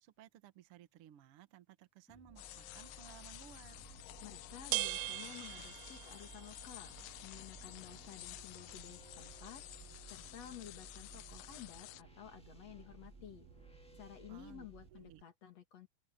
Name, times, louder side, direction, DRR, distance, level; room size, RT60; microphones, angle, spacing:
voice 1, 0.0-3.8 14.3-15.2, right 11 dB, 60° right, 1.8 m, -58 dB
sound 1, 2.1-14.9, equal, 5° left, 0.7 m, -59 dB
sound 2, 2.4-12.0, left 17 dB, 85° left, 1.4 m, -52 dB
sound 3, 3.7-15.2, right 21 dB, 85° right, 2.0 m, -47 dB
voice 2, 4.2-9.6 10.1-13.5 14.0-15.9, left 10 dB, 60° left, 3.3 m, -53 dB
omnidirectional pair, 3.4 m